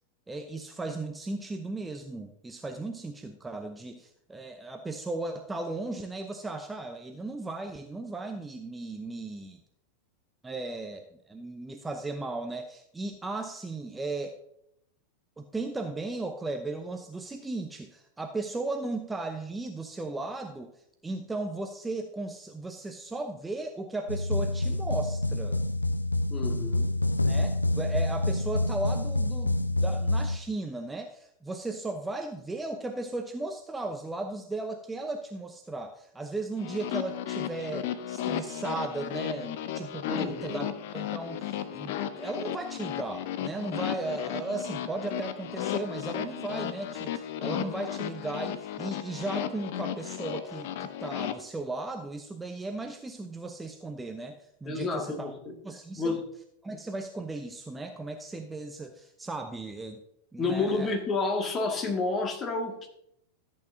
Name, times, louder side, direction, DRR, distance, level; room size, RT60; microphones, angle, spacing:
voice 1, 0.3-9.6 10.4-14.4 15.4-25.6 27.3-55.3 55.6-56.2 56.6-60.0 60.3-61.0, right 2 dB, 10° right, 6 dB, 0.7 m, -36 dB
sound 1, 24.1-30.4, left 2 dB, 85° left, 0.5 m, -27 dB
voice 2, 26.3-26.9 40.1-40.6 54.6-55.3 56.0-56.2 60.4-62.9, left 3 dB, 25° left, 2 dB, 2.1 m, -30 dB
sound 2, 36.6-51.3, left 10 dB, 50° left, 0.8 m, -34 dB
14.0 x 8.6 x 2.7 m, 0.75 s
figure-of-eight pair, 90°, 0 cm